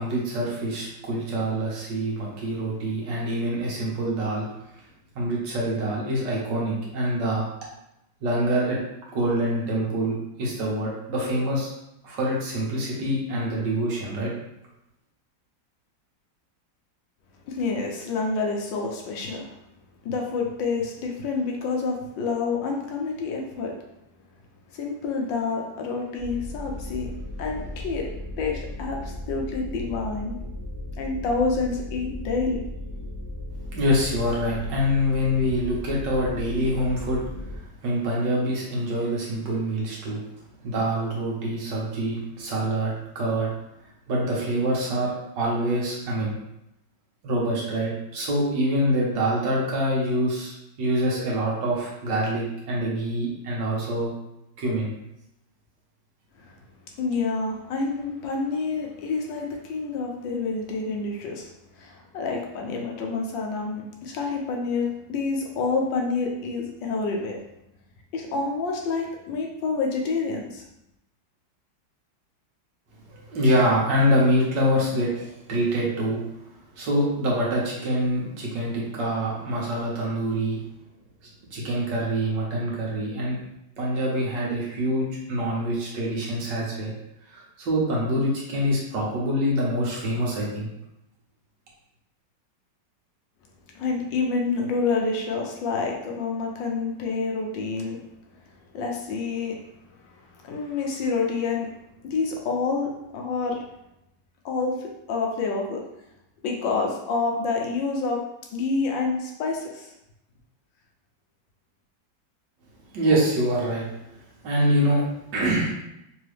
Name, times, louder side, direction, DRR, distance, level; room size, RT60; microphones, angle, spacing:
voice 1, 0.0-4.5 5.1-7.5 8.2-8.8 9.1-11.7 12.0-14.3 33.7-37.2 37.5-40.2 40.6-43.5 44.1-46.3 47.2-50.5 50.8-54.1 54.6-54.9 73.1-76.2 76.7-80.6 81.5-83.4 83.8-86.9 87.3-90.7 112.9-113.8 114.4-115.0 115.3-115.7, equal, 70° right, -4 dB, 1.7 m, -25 dB
voice 2, 17.5-19.6 20.0-23.8 24.7-27.1 27.4-30.4 31.0-32.6 56.4-56.6 57.0-61.5 61.8-67.4 68.1-70.6 93.7-98.0 98.7-99.6 100.0-101.7 102.0-103.7 104.4-105.8 106.4-108.2 108.5-109.9, left 4 dB, 80° left, 0 dB, 1.5 m, -28 dB
sound 1, 26.2-37.6, left 1 dB, 35° right, 1.5 m, -36 dB
3.9 x 3.0 x 3.2 m, 0.84 s
omnidirectional pair, 2.0 m